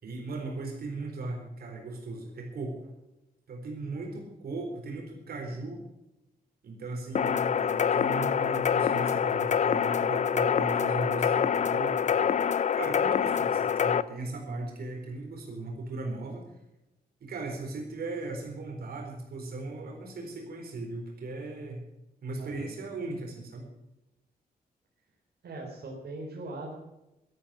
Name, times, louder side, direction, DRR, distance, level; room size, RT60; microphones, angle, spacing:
voice 1, 0.0-2.9 3.5-5.8 6.6-12.2 12.7-16.5 17.2-21.8 22.2-23.7, right 2 dB, 75° right, 2 dB, 4.1 m, -37 dB
sound 1, 7.2-14.0, left 8 dB, 50° left, 0.6 m, -26 dB
voice 2, 22.4-22.8 25.4-26.8, right 2 dB, 90° right, -1 dB, 3.8 m, -41 dB
12.5 x 12.0 x 7.4 m, 0.93 s
wide cardioid pair, 170°, 16 cm